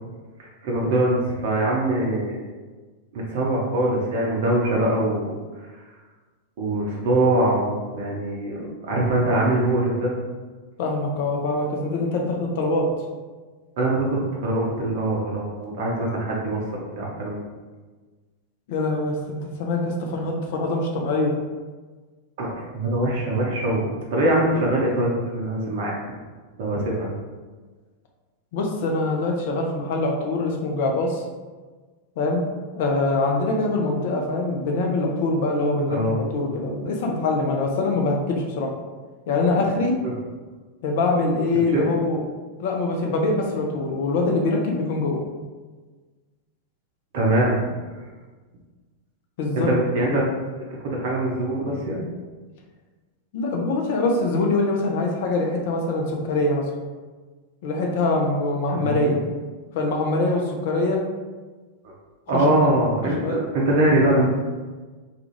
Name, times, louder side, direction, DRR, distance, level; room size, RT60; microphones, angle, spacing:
voice 1, 0.4-2.4 3.1-5.4 6.6-10.1 13.8-16.6 17.0-17.4 22.4-25.9 26.6-27.1 35.9-36.2 40.0-40.1 41.7-41.9 47.1-47.9 49.6-50.3 50.8-52.0 58.7-59.0 62.3-64.3, right 1 dB, 50° right, -3 dB, 0.5 m, -23 dB
voice 2, 10.8-12.9 18.7-21.4 28.5-31.2 32.2-32.4 32.7-38.7 39.3-40.0 40.8-42.2 42.6-45.2 49.4-49.7 50.1-50.2 53.3-56.7 57.6-59.2 59.7-61.0 62.3-62.7 63.2-63.4, left 2 dB, 50° left, 1 dB, 0.5 m, -24 dB
2.4 x 2.3 x 3.0 m, 1.3 s
figure-of-eight pair, 90°, 0 cm